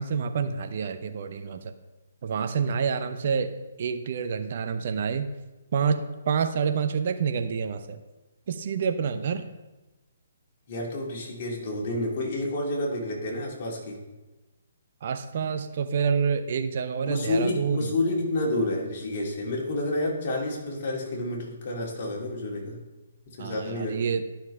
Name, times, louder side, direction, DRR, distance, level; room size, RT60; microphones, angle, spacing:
voice 1, 0.0-1.7 2.2-3.5 3.8-5.3 5.7-8.0 8.5-9.5 15.0-17.9 23.4-24.2, right 6 dB, 50° right, 8 dB, 0.7 m, -28 dB
voice 2, 10.7-14.0 17.0-22.8 23.3-24.1, left 1 dB, 45° left, -2 dB, 2.4 m, -29 dB
11.5 x 5.7 x 3.4 m, 1.1 s
figure-of-eight pair, 135°, 0 cm